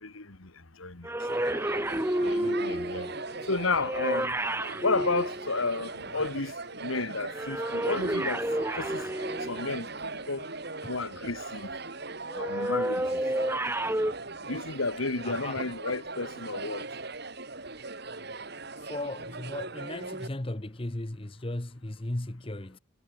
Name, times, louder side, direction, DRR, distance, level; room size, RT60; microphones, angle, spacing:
voice 1, 0.0-0.5 0.8-1.1 1.4-1.6 2.2-3.1 3.5-4.4 4.8-6.5 6.8-8.4 8.7-9.0 9.5-10.5 10.9-11.7 12.3-13.2 14.5-16.9, left 3 dB, 75° left, 2.1 m, -32 dB
sound 1, 1.0-6.1 7.3-9.9 12.3-14.1, right 1 dB, 10° right, 1.3 m, -30 dB
sound 2, 1.2-20.3, right 3 dB, 50° right, 3.4 m, -40 dB
voice 2, 15.2-15.6 18.8-22.8, left 1 dB, 25° left, 1.0 m, -36 dB
head